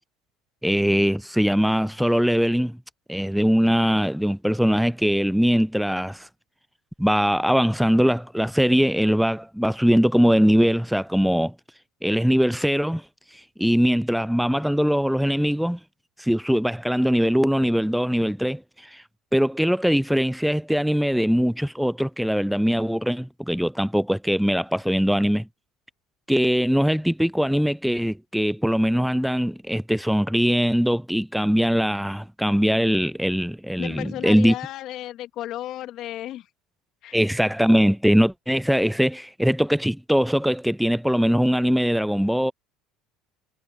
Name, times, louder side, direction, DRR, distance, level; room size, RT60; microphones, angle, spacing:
voice 1, 0.6-2.8 3.1-6.3 7.0-11.5 12.0-13.0 13.6-15.8 16.2-18.6 18.9-19.0 19.3-25.5 26.3-34.5 37.1-42.5, equal, ahead, 0.4 m, -21 dB
voice 2, 33.8-36.5 37.0-37.2, left 13 dB, 55° left, 3.2 m, -34 dB
hypercardioid pair, 80°, 0 cm